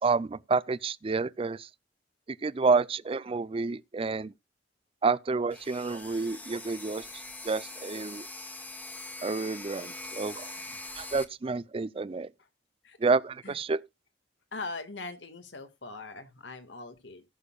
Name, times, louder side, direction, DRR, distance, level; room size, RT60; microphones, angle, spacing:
voice 1, 0.0-1.7 2.4-4.3 5.0-7.0 7.4-8.3 9.2-10.5 11.0-12.3 13.0-13.8, right 4 dB, 30° right, 0.4 m, -29 dB
sound 1, 5.5-11.2, left 2 dB, 10° left, 1.3 m, -43 dB
voice 2, 14.5-17.2, left 3 dB, 80° left, 1.8 m, -41 dB
19.0 x 6.5 x 2.3 m
head